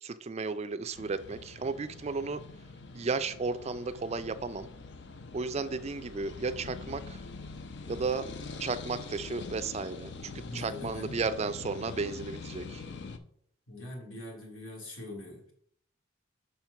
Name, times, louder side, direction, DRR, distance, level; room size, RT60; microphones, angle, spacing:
voice 1, 0.0-2.4 2.9-4.7 5.3-7.2 7.9-8.3 8.6-12.8, right 4 dB, 30° right, 12 dB, 0.4 m, -34 dB
sound 1, 0.9-13.2, left 4 dB, 60° left, 0.6 m, -44 dB
voice 2, 10.4-11.2 13.7-15.5, left 1 dB, 90° left, 0 dB, 2.4 m, -42 dB
5.7 x 4.5 x 5.7 m, 0.66 s
head